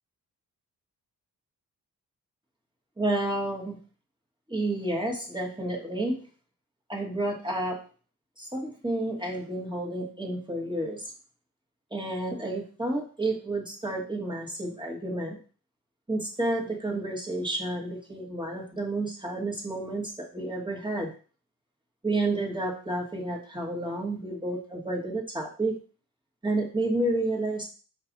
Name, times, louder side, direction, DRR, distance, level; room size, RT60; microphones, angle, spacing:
voice 1, 3.0-3.8 4.5-6.2 6.9-7.8 8.4-11.0 11.9-15.4 16.1-21.1 22.0-25.8 26.4-27.6, right 2 dB, 15° right, -2 dB, 1.5 m, -30 dB
4.6 x 2.4 x 3.9 m, 0.38 s
cardioid pair, 65°, 35 cm